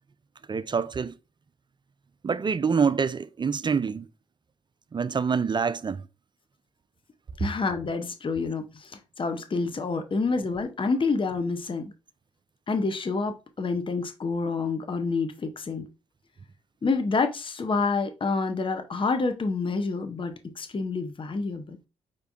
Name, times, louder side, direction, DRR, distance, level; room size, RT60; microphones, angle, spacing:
voice 1, 0.5-1.1 2.2-4.1 4.9-6.0, right 5 dB, 30° right, 0.4 m, -26 dB
voice 2, 7.4-11.9 12.7-15.9 16.8-21.8, left 4 dB, 35° left, 0.8 m, -28 dB
5.6 x 3.4 x 2.6 m
hypercardioid pair, 40°, 15 cm